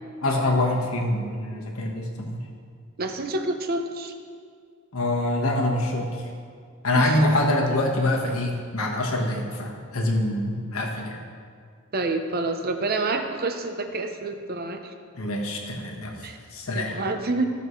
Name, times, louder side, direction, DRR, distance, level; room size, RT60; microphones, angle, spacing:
voice 1, 0.2-2.4 4.9-6.1 6.8-11.1 15.1-16.1 16.5-17.0, left 1 dB, 75° left, 0 dB, 1.4 m, -25 dB
voice 2, 3.0-4.1 6.9-7.3 11.9-14.9 16.2-16.4 16.7-17.5, right 2 dB, 45° right, 6 dB, 0.8 m, -28 dB
15.0 x 6.6 x 3.2 m, 2.2 s
head